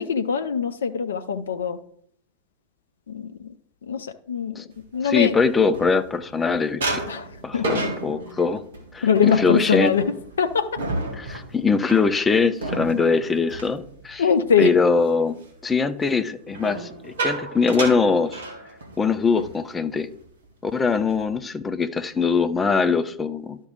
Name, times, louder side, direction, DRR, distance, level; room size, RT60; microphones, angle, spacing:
voice 1, 0.0-1.8 3.1-3.3 3.9-4.6 4.9-5.3 7.1-7.3 7.5-7.7 9.0-10.0 10.4-10.7 14.2-14.7, left 6 dB, 65° left, 9 dB, 0.5 m, -22 dB
sound 1, 4.9-6.4 6.8-14.6 15.0-15.3 16.5-19.1 19.4-19.6 19.9-20.2 20.7-21.3, right 2 dB, 65° right, 1.7 m, -32 dB
voice 2, 5.0-7.0 7.4-8.6 8.9-9.9 11.1-14.3 14.6-15.4 15.6-18.4 19.0-20.1 20.6-23.6, left 4 dB, 15° left, 10 dB, 0.6 m, -22 dB
11.5 x 5.5 x 3.8 m, 0.67 s
figure-of-eight pair, 90°, 0 cm